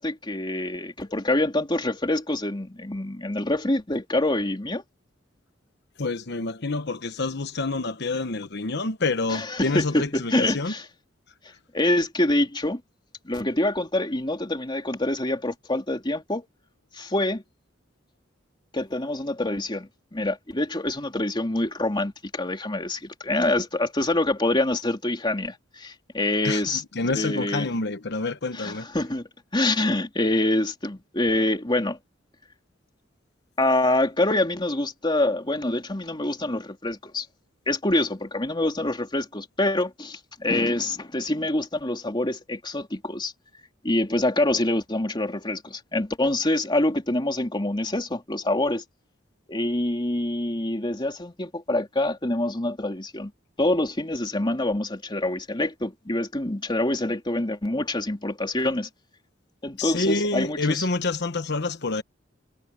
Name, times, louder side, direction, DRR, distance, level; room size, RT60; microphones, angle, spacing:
voice 1, 0.0-4.8 9.3-10.8 11.7-12.8 13.2-16.5 16.9-17.4 18.7-26.8 27.1-27.7 28.5-32.0 33.6-37.3 37.7-43.3 43.8-48.8 49.5-53.3 53.6-58.9 59.6-60.8, left 1 dB, 25° left, 3.2 m, -26 dB
voice 2, 6.0-10.7 26.4-28.9 59.8-62.0, left 3 dB, 60° left, 1.1 m, -27 dB
head